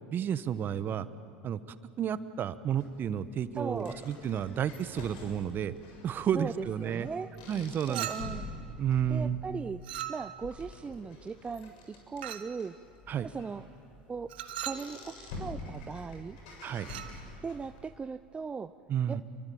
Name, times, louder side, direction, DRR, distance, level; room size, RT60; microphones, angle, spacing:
voice 1, 0.1-1.1 1.4-1.6 2.0-5.7 6.0-7.1 7.5-8.1 8.8-9.4 13.1-13.3 16.6-16.9 18.9-19.2, right 9 dB, 40° right, 14 dB, 1.2 m, -31 dB
sound 1, 2.8-17.8, left 2 dB, 65° left, 7.0 m, -47 dB
voice 2, 3.5-4.0 6.3-7.3 7.9-8.5 9.1-9.8 10.1-12.8 13.2-13.6 14.1-14.3 14.6-16.4 17.4-18.7 19.1-19.2, right 5 dB, 20° right, 11 dB, 0.6 m, -38 dB
Chink clink, 7.9-8.5 9.8-10.5 12.2-12.6 14.3-14.9 16.8-17.2, right 12 dB, 75° right, 1.3 m, -38 dB
28.0 x 23.5 x 8.7 m, 2.5 s
hypercardioid pair, 80°, 5 cm